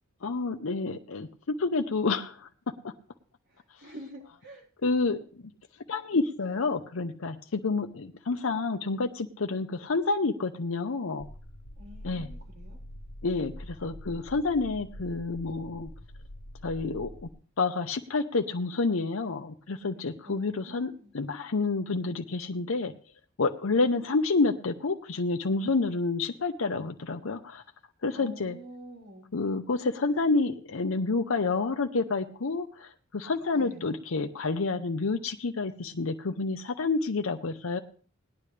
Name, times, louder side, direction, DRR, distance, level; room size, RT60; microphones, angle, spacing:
voice 1, 0.2-2.5 2.8-2.9 4.8-5.5 5.9-11.3 12.0-12.3 13.2-15.9 16.6-17.1 17.6-22.9 23.4-27.6 28.0-28.6 29.3-37.8, left 3 dB, 70° left, 5 dB, 0.7 m, -29 dB
voice 2, 3.5-4.7 11.8-12.8 20.2-21.1 28.2-29.3 33.5-33.9, right 1 dB, 60° right, -2 dB, 4.1 m, -47 dB
sound 1, 11.2-17.3, left 1 dB, 90° left, 1.0 m, -45 dB
18.5 x 10.0 x 3.3 m, 0.43 s
head